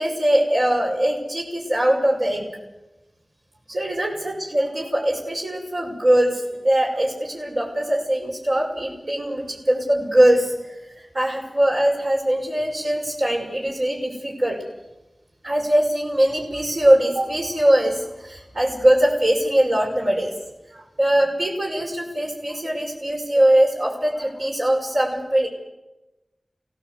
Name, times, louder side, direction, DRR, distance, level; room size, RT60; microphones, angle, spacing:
voice 1, 0.0-2.5 3.7-14.6 15.4-20.3 20.7-25.5, right 1 dB, 75° right, -2 dB, 5.8 m, -21 dB
25.0 x 17.0 x 8.4 m, 1.0 s
wide cardioid pair, 55°, 0 cm